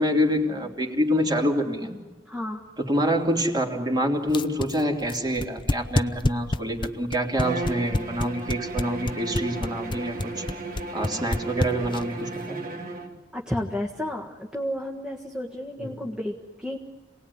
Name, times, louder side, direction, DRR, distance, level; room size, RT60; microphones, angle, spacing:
voice 1, 0.0-2.0 2.8-10.4 10.9-12.6 15.8-16.0, equal, 25° right, 2 dB, 3.2 m, -26 dB
voice 2, 2.3-2.6 11.1-11.2 13.3-16.8, left 1 dB, 5° right, -1 dB, 1.6 m, -32 dB
sound 1, 4.3-12.2, left 1 dB, 30° left, 0.7 m, -26 dB
Bowed string instrument, 7.3-13.2, right 3 dB, 55° right, 2.6 m, -34 dB
27.5 x 19.0 x 9.8 m, 1.2 s
head